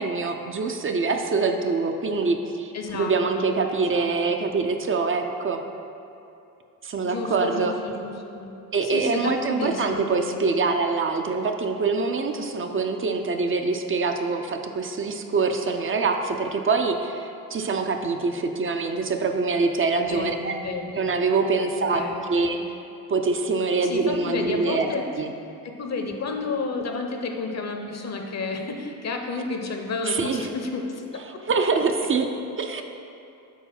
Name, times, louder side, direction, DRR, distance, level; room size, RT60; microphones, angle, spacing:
voice 1, 0.0-5.6 6.8-7.7 8.7-20.5 21.0-22.6 23.1-24.9 25.2-25.3 30.1-30.5 31.5-32.3 32.6-32.8, right 4 dB, 35° right, 5 dB, 0.5 m, -24 dB
voice 2, 2.7-3.5 3.9-4.1 7.0-8.5 8.8-10.4 20.0-20.9 21.7-22.6 23.8-25.1 25.6-31.4, left 4 dB, 45° left, 3 dB, 0.7 m, -31 dB
4.7 x 4.0 x 5.8 m, 2.7 s
cardioid pair, 75°, 36 cm